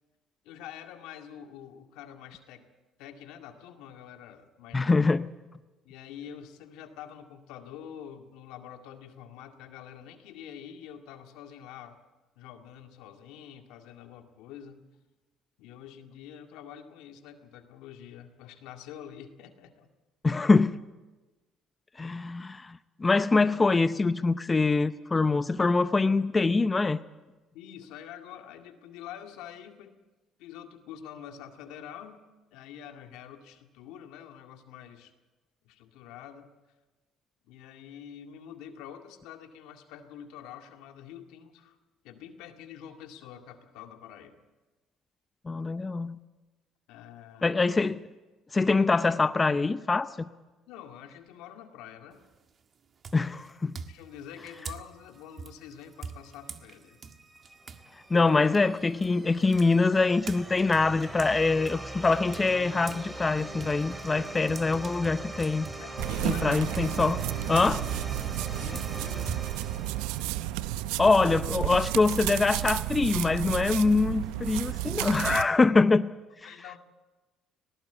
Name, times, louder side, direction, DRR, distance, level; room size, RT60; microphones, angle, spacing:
voice 1, 0.4-2.6 3.0-4.9 5.8-12.0 12.4-14.8 15.6-19.9 27.5-30.0 30.4-32.2 32.5-35.1 35.6-36.5 37.4-41.8 42.0-44.4 46.9-47.6 50.7-52.2 53.9-57.0 58.1-58.2 65.8-66.5 68.5-69.4 76.4-76.8, left 9 dB, 80° left, 2.1 m, -46 dB
voice 2, 4.7-5.3 20.2-20.8 22.0-27.0 45.5-46.2 47.4-48.1 48.5-50.3 53.1-53.8 58.1-65.7 66.2-67.2 67.5-67.9 71.0-76.1 76.4-76.5, left 3 dB, 25° left, 0.7 m, -24 dB
sound 1, 52.1-52.5 53.0-57.9 58.2-63.1 63.4-70.8, right 5 dB, 45° right, 1.6 m, -44 dB
sound 2, 56.9-70.7, right 1 dB, 15° right, 4.4 m, -41 dB
sound 3, 66.0-75.5, right 15 dB, 85° right, 0.6 m, -32 dB
19.0 x 18.0 x 8.1 m
supercardioid pair, 75°, 0 cm